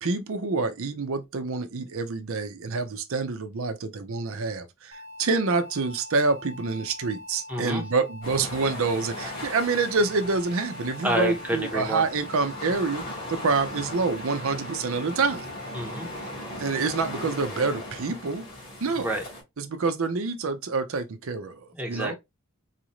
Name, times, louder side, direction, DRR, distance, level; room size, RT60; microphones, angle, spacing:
voice 1, 0.0-13.0 13.3-15.5 16.6-18.4 18.8-19.1 19.6-21.6 21.9-22.1, right 4 dB, 65° right, 0.6 m, -27 dB
sound 1, 4.9-16.3, left 2 dB, 45° right, 1.1 m, -44 dB
voice 2, 7.5-7.8 11.0-12.0 15.7-16.1 19.0-19.2 21.7-22.1, right 1 dB, 5° right, 1.0 m, -28 dB
sound 2, 8.2-19.4, left 1 dB, 45° left, 2.3 m, -38 dB
4.1 x 2.5 x 3.0 m
head